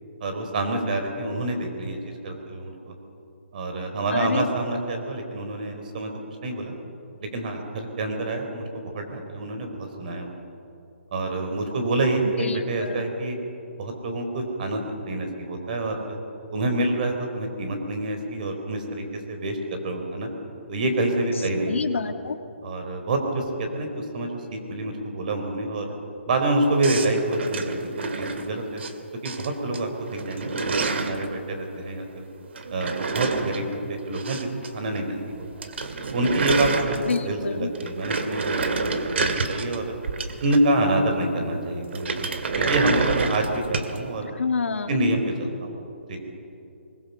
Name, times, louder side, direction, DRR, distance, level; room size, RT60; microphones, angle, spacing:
voice 1, 0.2-3.0 3.5-6.1 6.4-6.7 7.2-10.3 11.1-13.4 13.8-14.8 15.1-16.2 16.5-20.3 20.7-21.8 22.6-25.9 26.3-27.8 28.1-28.8 29.2-32.3 32.7-35.7 36.1-38.7 39.2-39.8 40.4-42.3 42.5-44.3 44.9-45.8 46.1-46.2, right 2 dB, 40° right, 5 dB, 4.0 m, -27 dB
voice 2, 4.1-4.5 12.2-13.0 21.7-22.4 37.1-37.7 44.2-45.1, left 5 dB, 75° left, 6 dB, 2.0 m, -28 dB
sound 1, 26.8-28.9 29.2-29.8 30.1-31.3 32.5-34.7 34.9-35.0 35.3-35.4 35.6-37.4 37.7-40.8 41.9-44.0, right 4 dB, 60° right, 2.2 m, -28 dB
22.5 x 21.0 x 6.9 m, 2.8 s
hypercardioid pair, 165°, 7 cm